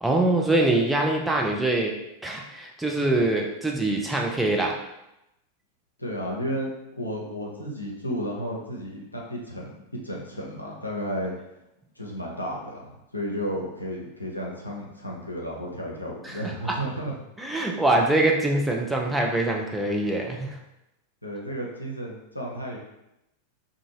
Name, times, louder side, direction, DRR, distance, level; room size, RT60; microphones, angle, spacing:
voice 1, 0.0-1.9 2.2-4.7 16.2-16.3 17.4-20.6, right 2 dB, 5° right, -1 dB, 0.4 m, -24 dB
voice 2, 6.0-6.7 7.0-11.3 12.0-17.1 21.2-22.8, equal, 85° left, -2 dB, 0.6 m, -33 dB
2.5 x 2.5 x 2.9 m, 0.88 s
figure-of-eight pair, 90°, 0 cm